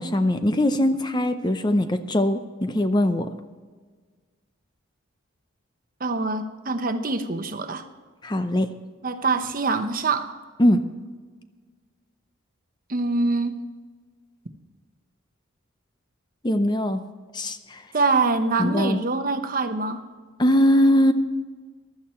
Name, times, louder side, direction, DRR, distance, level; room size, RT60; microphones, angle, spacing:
voice 1, 0.0-3.3 8.2-8.7 10.6-10.8 16.4-17.0 17.3-17.8 18.6-19.0 20.4-21.1, left 1 dB, 20° left, 9 dB, 0.6 m, -21 dB
voice 2, 6.0-7.8 9.0-10.3 12.9-13.6 17.9-20.0, right 3 dB, 45° right, 8 dB, 1.0 m, -24 dB
15.0 x 12.0 x 4.4 m, 1.4 s
head